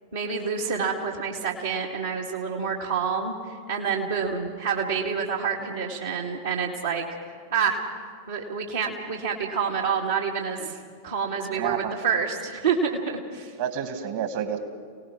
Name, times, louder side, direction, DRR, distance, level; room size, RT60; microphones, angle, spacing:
voice 1, 0.1-7.0 7.5-7.8 8.3-10.8 11.0-13.5, right 6 dB, 70° right, -3 dB, 2.3 m, -28 dB
voice 2, 11.5-11.9 13.6-14.6, right 9 dB, 50° right, 8 dB, 2.0 m, -30 dB
29.5 x 18.5 x 4.9 m, 2.1 s
figure-of-eight pair, 90°, 0 cm